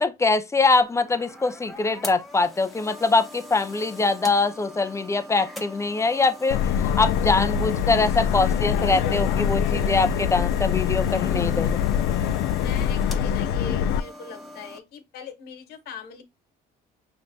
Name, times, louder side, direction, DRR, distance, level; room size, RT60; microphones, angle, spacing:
voice 1, 0.0-11.8, left 3 dB, 15° left, 0.5 m, -23 dB
sound 1, 0.8-14.8, left 1 dB, ahead, 1.0 m, -42 dB
Subway metro underground, 6.5-14.0, left 8 dB, 90° left, 0.4 m, -24 dB
voice 2, 9.8-10.2 11.0-11.4 12.5-16.2, left 5 dB, 70° left, 1.3 m, -41 dB
5.7 x 3.3 x 2.6 m
cardioid pair, 110°, 17 cm